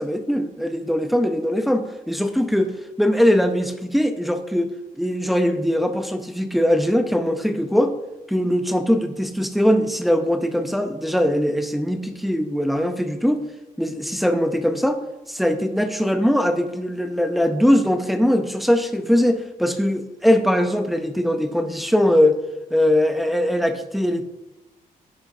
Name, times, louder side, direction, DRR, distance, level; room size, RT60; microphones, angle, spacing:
voice 1, 0.0-2.7 3.0-4.7 5.0-7.9 8.3-13.4 13.8-15.0 15.3-22.4 22.7-24.2, equal, ahead, 6 dB, 0.5 m, -21 dB
10.5 x 8.7 x 2.6 m, 1.0 s
wide cardioid pair, 180°, 15 cm